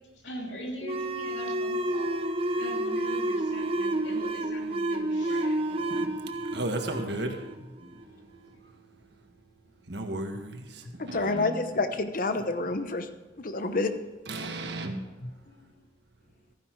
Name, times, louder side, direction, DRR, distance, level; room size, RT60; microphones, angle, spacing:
voice 1, 0.2-2.1 2.6-6.0 6.9-7.3 15.4-15.9, equal, 80° left, 0 dB, 2.9 m, -42 dB
sound 1, 0.8-8.0, right 1 dB, 30° right, 0.8 m, -30 dB
voice 2, 5.9-7.4 7.8-9.4 9.8-11.8 14.3-15.1, right 2 dB, 65° right, 4 dB, 1.6 m, -36 dB
voice 3, 10.9-13.1 13.4-13.9 15.2-15.3, left 3 dB, 50° left, 8 dB, 0.9 m, -29 dB
14.5 x 10.5 x 4.7 m, 1.2 s
head